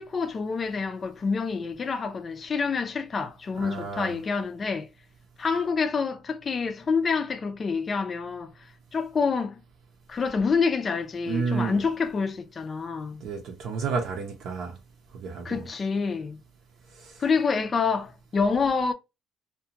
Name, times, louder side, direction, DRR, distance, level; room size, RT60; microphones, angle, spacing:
voice 1, 0.0-4.9 5.4-8.5 8.9-9.6 10.1-13.2 15.4-16.4 17.2-18.9, left 5 dB, 30° left, 0.4 m, -27 dB
voice 2, 3.6-4.2 11.2-11.8 13.2-14.8 15.1-15.6 17.0-17.2, right 5 dB, 65° right, 0.6 m, -31 dB
2.6 x 2.3 x 2.8 m
cardioid pair, 135°, 0 cm